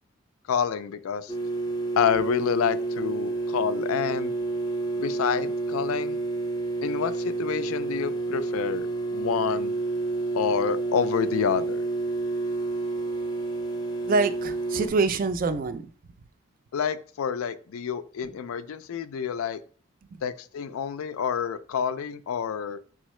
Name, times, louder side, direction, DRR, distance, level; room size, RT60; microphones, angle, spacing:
voice 1, 0.5-1.3 2.0-4.3 4.9-6.2 6.8-9.7 10.3-11.8 16.7-19.6 20.2-22.8, left 7 dB, 90° left, 14 dB, 0.4 m, -28 dB
sound 1, 1.3-14.9, right 3 dB, 20° left, 0.6 m, -29 dB
voice 2, 14.1-15.9 20.1-20.2, right 3 dB, 40° right, 11 dB, 0.3 m, -25 dB
4.3 x 3.6 x 3.1 m, 0.41 s
head